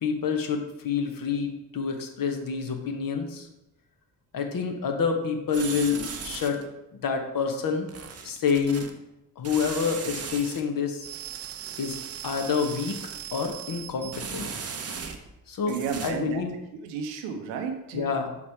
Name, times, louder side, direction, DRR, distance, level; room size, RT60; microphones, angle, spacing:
voice 1, 0.0-3.5 4.3-6.6 6.9-7.9 8.2-8.9 9.4-11.1 11.8-12.0 12.2-14.5 15.5-16.5 17.9-18.4, left 6 dB, 40° left, 4 dB, 1.1 m, -28 dB
sound 1, 5.5-6.7 7.9-8.9 9.4-10.6 11.0-15.4 15.7-16.1, right 7 dB, 30° right, 0.8 m, -37 dB
voice 2, 15.7-16.4 16.8-18.1, right 6 dB, 65° right, 5 dB, 0.9 m, -32 dB
6.4 x 4.8 x 3.5 m, 0.91 s
figure-of-eight pair, 45°, 49 cm